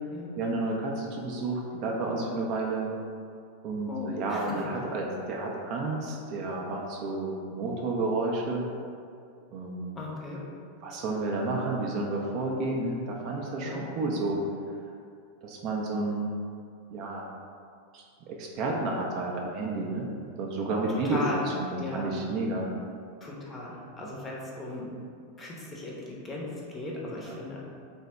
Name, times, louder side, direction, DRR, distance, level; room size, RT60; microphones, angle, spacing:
voice 1, 0.4-2.9 3.6-8.7 9.5-10.0 10.8-14.4 15.4-16.3 16.9-17.2 17.9-22.7 24.0-24.1 27.3-27.4, right 2 dB, 40° right, -1 dB, 0.4 m, -31 dB
voice 2, 3.9-4.6 10.0-10.4 13.6-14.2 21.0-21.4 21.8-22.1 23.2-24.9 25.4-27.6, left 2 dB, 20° left, -4 dB, 0.6 m, -37 dB
2.7 x 2.1 x 3.3 m, 2.3 s
figure-of-eight pair, 90°, 0 cm